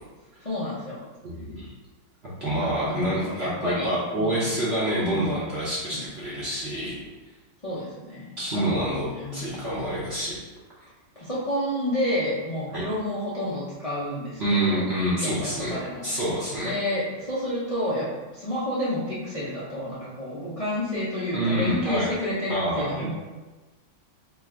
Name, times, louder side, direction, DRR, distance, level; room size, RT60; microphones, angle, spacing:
voice 1, 0.4-1.0 2.8-4.5 5.1-6.0 7.6-9.6 11.2-14.9 15.2-16.1 16.6-23.1, left 1 dB, 55° left, -10 dB, 0.4 m, -30 dB
voice 2, 1.2-1.7 2.4-7.0 8.4-10.4 12.7-12.8 14.4-16.7 21.3-22.1 22.5-23.1, right 1 dB, 55° right, -9 dB, 0.7 m, -27 dB
3.1 x 2.4 x 4.3 m, 1.2 s
omnidirectional pair, 2.0 m